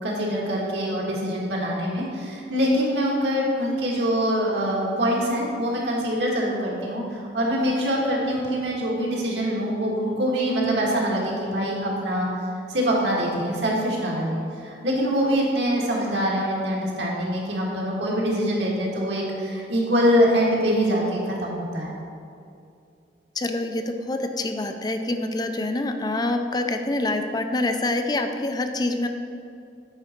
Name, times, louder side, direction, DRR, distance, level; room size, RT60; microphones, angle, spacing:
voice 1, 0.0-12.3 12.7-21.9, equal, 70° right, -3 dB, 1.8 m, -24 dB
voice 2, 23.4-29.1, left 2 dB, 20° left, 6 dB, 0.4 m, -26 dB
8.9 x 5.4 x 4.5 m, 2.5 s
head